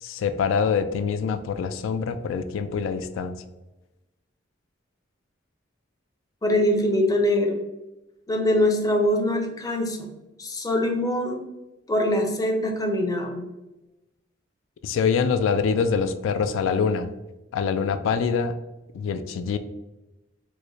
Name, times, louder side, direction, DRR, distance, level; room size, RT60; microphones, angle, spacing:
voice 1, 0.0-3.3 14.8-17.1 17.5-18.5 18.9-19.6, left 6 dB, 85° left, 10 dB, 0.3 m, -25 dB
voice 2, 6.4-7.6 8.3-10.1 10.4-11.4 11.9-13.5, left 1 dB, 20° left, 3 dB, 0.5 m, -23 dB
4.6 x 2.1 x 2.6 m, 1.0 s
head